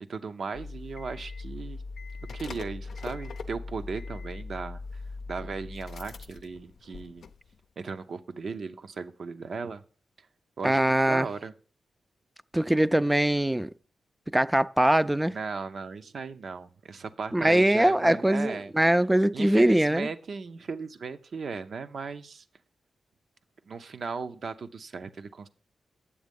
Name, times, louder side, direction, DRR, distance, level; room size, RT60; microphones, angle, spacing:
voice 1, 0.1-1.8 2.3-5.0 5.3-7.2 7.8-9.8 10.2-10.3 10.6-11.5 15.3-18.7 19.3-22.4 23.7-25.5, right 4 dB, 65° right, 0.7 m, -37 dB
sound 1, 0.5-7.7 7.9-8.0, left 3 dB, 70° left, 0.5 m, -40 dB
voice 2, 10.6-11.3 12.5-13.7 14.3-15.4 17.3-20.1, right 1 dB, 15° right, 0.4 m, -22 dB
8.5 x 7.3 x 5.3 m
supercardioid pair, 45°, 0 cm